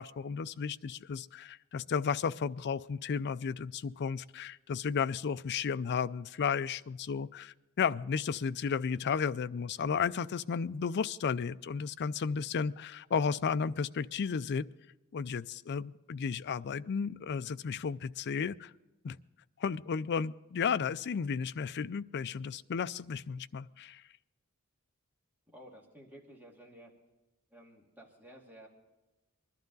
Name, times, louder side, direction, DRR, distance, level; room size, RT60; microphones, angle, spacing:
voice 1, 0.0-14.7 15.1-18.7 19.0-19.2 19.6-24.0, left 6 dB, 55° left, 15 dB, 0.4 m, -33 dB
voice 2, 25.5-26.9 27.5-28.7, equal, 10° right, -2 dB, 2.3 m, -53 dB
21.0 x 12.0 x 4.0 m, 1.0 s
head